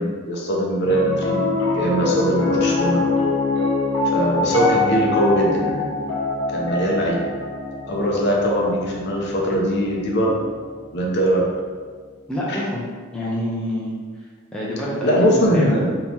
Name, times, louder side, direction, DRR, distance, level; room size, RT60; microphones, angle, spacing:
voice 1, 0.0-1.4 1.7-3.0 4.1-6.0 6.5-7.2 7.9-10.4 10.9-11.5 12.5-12.6 15.0-15.9, equal, 50° left, -2 dB, 0.7 m, -21 dB
Piano, 0.8-11.2, left 3 dB, 70° left, 1.1 m, -24 dB
voice 2, 12.3-12.8 13.1-14.0 14.5-15.8, left 1 dB, 5° left, -6 dB, 0.6 m, -26 dB
3.7 x 3.0 x 4.2 m, 1.5 s
head